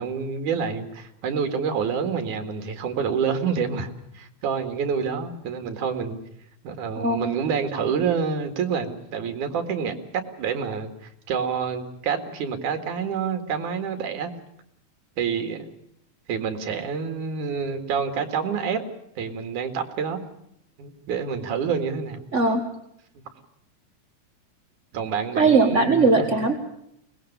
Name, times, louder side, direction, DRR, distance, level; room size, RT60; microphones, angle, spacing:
voice 1, 0.0-6.2 6.6-9.9 10.4-14.3 15.2-15.7 16.3-18.8 19.2-20.2 20.8-22.2 24.9-26.3, right 6 dB, 75° right, 7 dB, 3.5 m, -27 dB
voice 2, 7.0-7.3 22.3-22.6 25.4-26.5, right 3 dB, 35° right, 4 dB, 1.2 m, -19 dB
23.5 x 20.0 x 6.8 m, 0.78 s
omnidirectional pair, 3.6 m